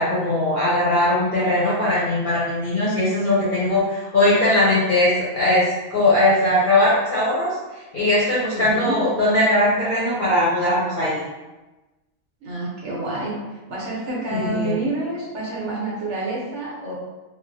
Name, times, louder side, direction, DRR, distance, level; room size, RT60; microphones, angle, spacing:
voice 1, 0.0-7.5 7.9-11.2 14.3-14.7, left 1 dB, 50° left, -8 dB, 0.7 m, -20 dB
voice 2, 8.5-9.0 12.4-13.3 13.7-16.9, right 2 dB, 60° right, -6 dB, 1.1 m, -28 dB
3.6 x 2.1 x 2.6 m, 1.1 s
omnidirectional pair, 1.5 m